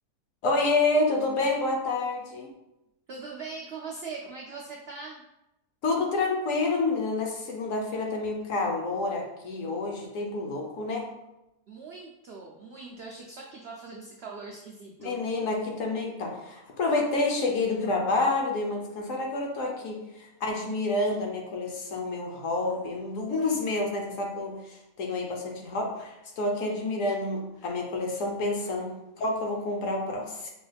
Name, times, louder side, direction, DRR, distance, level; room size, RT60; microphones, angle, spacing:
voice 1, 0.4-2.5 5.8-11.0 15.0-30.5, left 2 dB, 65° left, 1 dB, 1.0 m, -28 dB
voice 2, 3.1-5.2 11.7-15.2, right 4 dB, 90° right, -1 dB, 0.5 m, -41 dB
5.4 x 2.3 x 3.3 m, 0.93 s
omnidirectional pair, 1.7 m